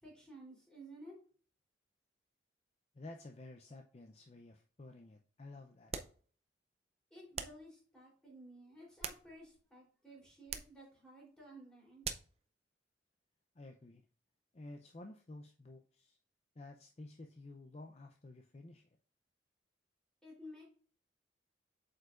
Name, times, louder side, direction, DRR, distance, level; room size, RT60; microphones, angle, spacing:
voice 1, 0.0-1.2 7.1-12.1 20.2-20.6, right 1 dB, 5° left, 3.3 m, -54 dB
voice 2, 2.9-5.9 13.5-14.0 14.5-16.2 16.6-18.8, left 2 dB, 35° left, 0.5 m, -52 dB
sound 1, 5.9-6.2 7.3-7.7 8.7-9.6 10.5-10.8 12.0-12.4, right 7 dB, 35° right, 0.5 m, -43 dB
7.6 x 5.3 x 2.4 m
head